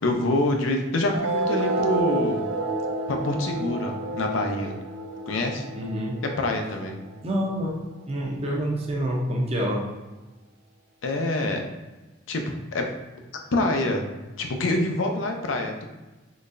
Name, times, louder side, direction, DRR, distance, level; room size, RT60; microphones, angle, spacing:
voice 1, 0.0-2.5 3.1-4.7 5.3-5.6 6.2-7.0 11.0-11.7 12.3-12.9 13.5-14.1 14.4-15.8, left 2 dB, 75° left, 3 dB, 0.5 m, -26 dB
sound 1, 1.1-8.1, right 2 dB, 70° right, 0.5 m, -30 dB
voice 2, 5.8-6.2 7.2-9.9, equal, 30° right, -1 dB, 0.6 m, -27 dB
3.9 x 3.2 x 2.5 m, 1.1 s
head